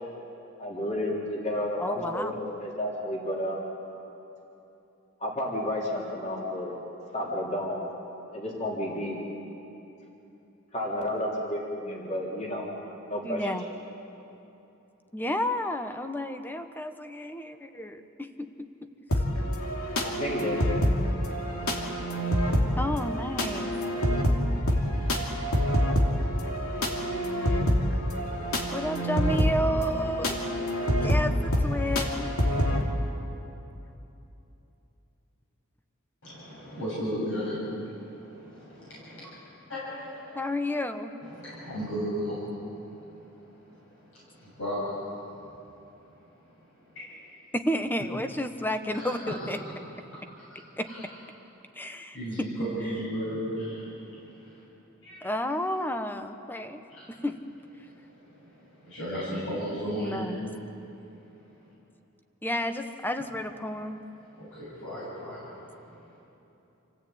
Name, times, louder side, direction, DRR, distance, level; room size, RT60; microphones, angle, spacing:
voice 1, 0.6-3.6 5.2-6.7 7.1-7.8 8.3-9.2 10.7-12.7 13.1-13.5 20.0-20.6, left 1 dB, 35° left, -3 dB, 3.4 m, -31 dB
voice 2, 1.8-2.4 13.2-13.7 15.1-18.7 22.8-23.7 28.7-30.4 31.0-32.3 40.3-41.1 47.5-49.6 50.8-50.9 51.8-52.5 55.2-56.8 57.1-57.4 60.0-60.4 62.4-64.0, left 1 dB, 10° left, 8 dB, 1.0 m, -31 dB
sound 1, 19.1-32.8, equal, 80° left, 2.7 m, -26 dB
voice 3, 36.2-39.3 39.7-40.4 41.2-45.5 46.6-46.7 46.9-47.0 48.9-49.3 50.3-51.1 52.1-54.6 55.0-55.2 56.9-57.1 57.9-60.3 64.4-66.2, equal, 65° left, -8 dB, 7.3 m, -36 dB
27.5 x 16.0 x 8.8 m, 2.9 s
head